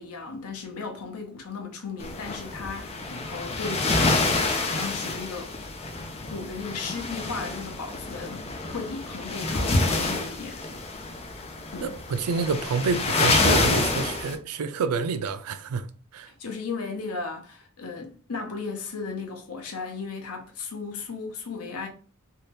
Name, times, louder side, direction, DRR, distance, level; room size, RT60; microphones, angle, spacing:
voice 1, 0.0-5.5 6.3-10.6 11.7-12.0 16.3-21.9, left 4 dB, 85° left, 0.7 m, -36 dB
sound 1, 2.0-14.4, left 3 dB, 30° left, 0.4 m, -27 dB
voice 2, 11.8-15.9 16.1-16.3, right 5 dB, 90° right, 0.4 m, -28 dB
2.7 x 2.2 x 3.3 m
head